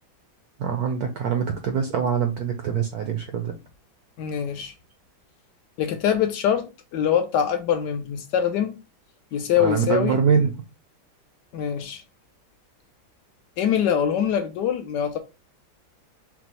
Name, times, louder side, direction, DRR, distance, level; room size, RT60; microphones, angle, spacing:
voice 1, 0.6-3.5 9.6-10.6, right 6 dB, 70° right, 0.9 m, -24 dB
voice 2, 4.2-4.7 5.8-8.8 9.3-10.2 11.5-12.0 13.6-15.2, left 9 dB, 75° left, 1.0 m, -24 dB
5.9 x 2.0 x 2.9 m
omnidirectional pair, 2.1 m